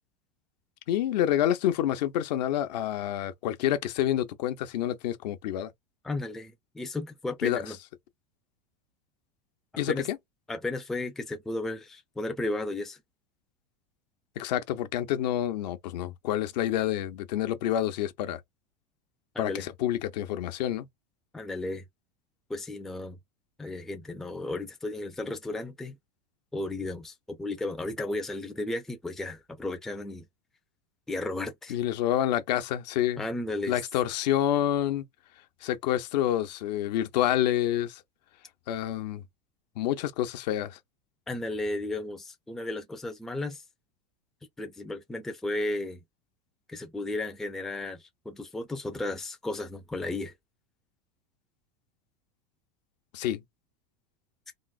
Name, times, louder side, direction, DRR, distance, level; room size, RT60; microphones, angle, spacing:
voice 1, 0.9-5.7 7.4-7.6 9.8-10.2 14.4-18.4 19.4-20.9 31.7-33.3 33.7-35.0 35.6-38.0 38.7-39.2 39.8-40.8 53.1-53.4, left 12 dB, 80° left, 0.7 m, -28 dB
voice 2, 6.0-7.8 9.9-10.1 10.5-13.0 19.3-19.7 21.3-21.8 22.5-23.2 23.6-26.0 26.5-30.2 31.1-31.8 33.2-33.8 41.3-43.6 44.6-46.0 46.7-50.3, left 2 dB, ahead, 0.3 m, -34 dB
3.6 x 2.0 x 2.3 m
supercardioid pair, 145°, 21 cm